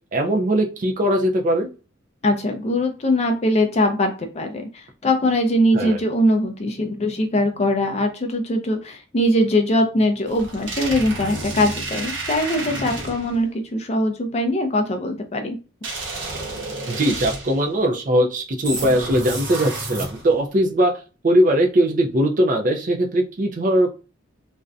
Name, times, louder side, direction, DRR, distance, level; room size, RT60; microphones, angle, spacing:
voice 1, 0.1-1.7 5.7-6.0 16.9-21.0 21.2-23.9, right 1 dB, 40° right, 3 dB, 0.4 m, -20 dB
voice 2, 2.2-15.6, left 1 dB, 35° left, 4 dB, 0.4 m, -21 dB
sound 1, 10.3-13.4 15.8-17.7 18.6-20.4, right 2 dB, 65° right, 0.8 m, -30 dB
2.5 x 2.1 x 2.4 m, 0.33 s
head